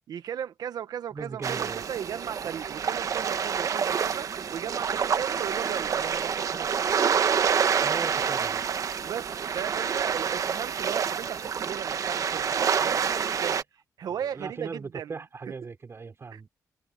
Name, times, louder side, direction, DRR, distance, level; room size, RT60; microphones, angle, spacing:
voice 1, 0.1-6.7 9.0-13.6 14.0-15.2 16.3-16.4, right 9 dB, 75° right, 1.3 m, -36 dB
voice 2, 1.1-1.9 6.5-6.6 7.0-7.1 7.8-8.7 14.0-16.5, right 4 dB, 40° right, 4.5 m, -39 dB
sound 1, 1.4-13.6, right 7 dB, 55° right, 1.2 m, -27 dB
cardioid pair, 90°, 7 cm